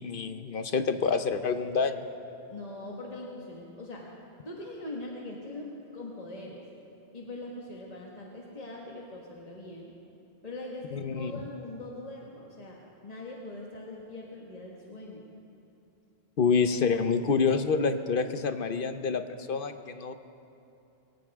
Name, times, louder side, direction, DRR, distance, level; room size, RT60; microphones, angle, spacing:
voice 1, 0.0-2.0 10.9-11.3 16.4-20.1, left 5 dB, 55° left, 9 dB, 0.9 m, -27 dB
voice 2, 2.5-4.0 4.4-6.6 7.1-9.9 10.4-12.8 13.0-15.2, left 2 dB, 35° left, -3 dB, 1.7 m, -42 dB
22.5 x 18.0 x 3.6 m, 2.8 s
omnidirectional pair, 1.1 m